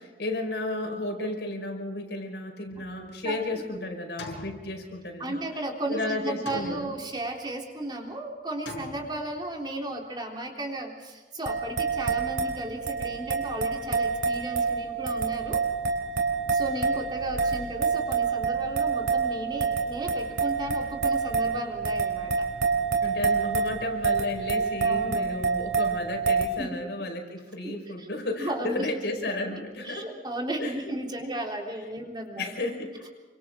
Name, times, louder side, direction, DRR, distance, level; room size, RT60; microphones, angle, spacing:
voice 1, 0.0-5.4 5.9-6.9 23.0-30.1 30.6-30.9 31.2-31.3 32.0-32.1 32.4-33.1, left 2 dB, 70° left, 3 dB, 5.3 m, -33 dB
sound 1, 2.7-3.6 4.2-5.4 6.5-7.4 8.7-9.6, left 2 dB, 85° left, 6.3 m, -42 dB
voice 2, 3.2-3.8 5.2-15.6 16.5-22.5 24.8-25.2 26.6-26.8 27.6-28.1 28.4-28.9 29.8-32.5, right 1 dB, 25° right, 0 dB, 3.7 m, -34 dB
sound 2, 11.4-26.4, right 5 dB, 80° right, 3.8 m, -27 dB
29.5 x 25.5 x 3.9 m, 1.3 s
head